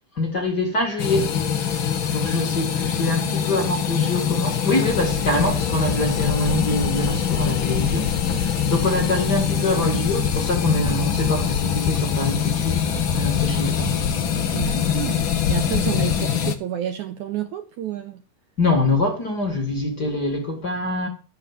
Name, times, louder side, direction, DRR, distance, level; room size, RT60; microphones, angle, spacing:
voice 1, 0.1-1.3 2.1-14.0 18.6-21.1, left 2 dB, 30° left, 2.3 m, -24 dB
sound 1, 1.0-16.5, left 7 dB, 60° left, 1.3 m, -24 dB
sound 2, 4.9-16.3, left 11 dB, 85° left, 2.6 m, -29 dB
voice 2, 14.5-15.2 15.5-18.2, right 11 dB, 70° right, 1.9 m, -29 dB
12.5 x 7.6 x 7.5 m
omnidirectional pair, 4.2 m